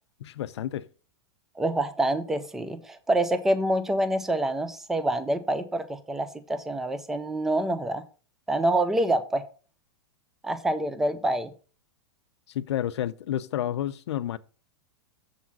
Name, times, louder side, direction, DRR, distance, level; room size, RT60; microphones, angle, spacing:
voice 1, 0.2-0.9 12.5-14.4, left 11 dB, 75° left, 0.6 m, -30 dB
voice 2, 1.6-8.0 8.5-9.4 10.4-11.5, right 1 dB, 5° right, 0.3 m, -26 dB
7.1 x 4.0 x 5.9 m
supercardioid pair, 165°, 14 cm